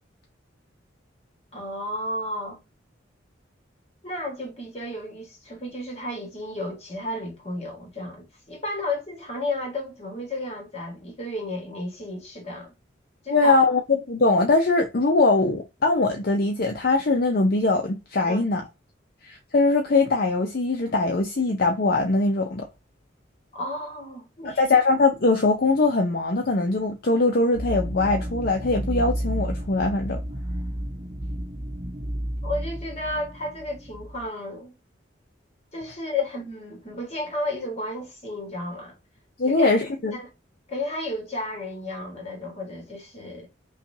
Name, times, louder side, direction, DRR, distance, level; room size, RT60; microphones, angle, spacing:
voice 1, 1.5-2.6 4.0-12.7 13.2-13.6 18.3-18.4 23.5-24.7 32.4-34.7 35.7-39.0 39.5-39.7 40.1-40.3 40.7-43.5, left 1 dB, 35° left, 1.7 m, -33 dB
voice 2, 13.3-18.6 19.2-22.7 24.6-30.2 39.4-40.2, left 3 dB, 55° left, 0.6 m, -21 dB
sound 1, 27.5-34.3, equal, 35° right, 0.8 m, -31 dB
5.6 x 2.4 x 2.7 m
head